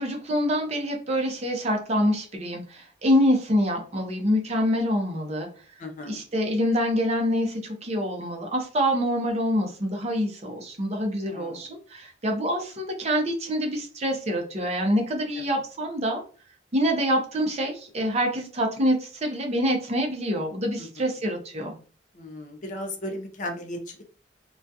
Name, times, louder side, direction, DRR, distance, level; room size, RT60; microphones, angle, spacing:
voice 1, 0.0-5.5 6.1-16.2 16.7-21.7, equal, 35° right, 2 dB, 0.6 m, -26 dB
voice 2, 5.8-6.2 11.3-11.6 15.3-15.6 20.8-21.1 22.1-24.1, left 1 dB, 45° left, 4 dB, 0.5 m, -36 dB
2.3 x 2.3 x 2.6 m, 0.39 s
head